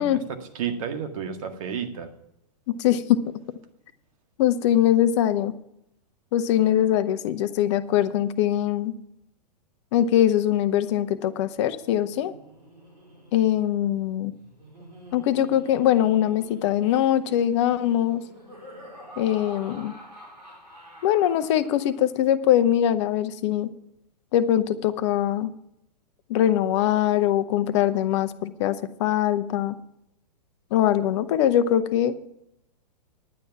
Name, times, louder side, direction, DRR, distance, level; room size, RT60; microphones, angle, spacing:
voice 1, 0.0-2.1, right 7 dB, 55° right, 6 dB, 1.8 m, -32 dB
voice 2, 2.7-3.2 4.4-5.5 6.3-8.9 9.9-12.3 13.3-14.3 15.1-18.2 19.2-19.9 21.0-23.7 24.3-25.5 26.3-29.7 30.7-32.1, left 11 dB, 45° left, 13 dB, 0.9 m, -22 dB
Laughter, 11.7-22.2, equal, 85° right, 4.4 m, -48 dB
10.5 x 9.4 x 5.8 m, 0.79 s
figure-of-eight pair, 110°, 21 cm